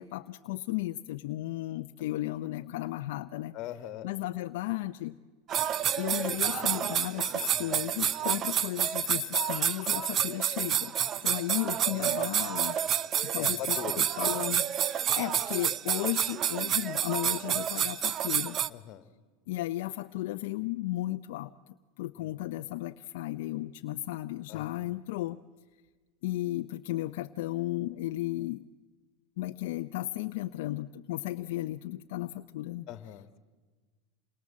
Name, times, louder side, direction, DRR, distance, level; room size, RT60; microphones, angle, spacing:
voice 1, 0.0-3.5 4.0-5.2 6.0-10.9 11.2-12.8 13.3-18.6 19.5-21.5 22.0-25.4 26.2-28.6 29.4-32.9, left 16 dB, 75° left, 7 dB, 0.7 m, -34 dB
voice 2, 3.5-4.1 11.9-12.7 13.3-14.3 18.7-19.1 22.2-22.7 24.5-24.9 32.9-33.4, left 12 dB, 50° left, 11 dB, 1.8 m, -42 dB
sound 1, 5.5-18.7, right 9 dB, 35° right, 0.7 m, -29 dB
28.0 x 22.5 x 7.6 m, 1.4 s
supercardioid pair, 130°, 0 cm